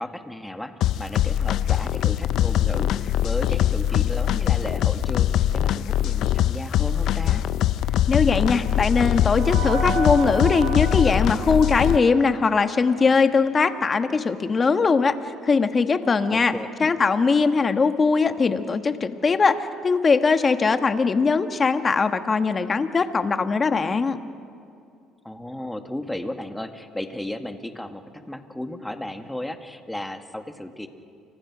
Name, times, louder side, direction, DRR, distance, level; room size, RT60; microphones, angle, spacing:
voice 1, 0.0-7.4 16.3-16.9 25.2-30.9, left 1 dB, 5° left, 6 dB, 2.0 m, -34 dB
sound 1, 0.8-12.0, left 11 dB, 65° left, 0.7 m, -22 dB
sound 2, 8.0-13.3, right 5 dB, 65° right, 5.2 m, -34 dB
voice 2, 8.1-15.1 15.4-16.5 16.8-24.2, left 4 dB, 30° left, 9 dB, 1.5 m, -21 dB
29.5 x 25.5 x 6.2 m, 2.4 s
supercardioid pair, 90°, 0 cm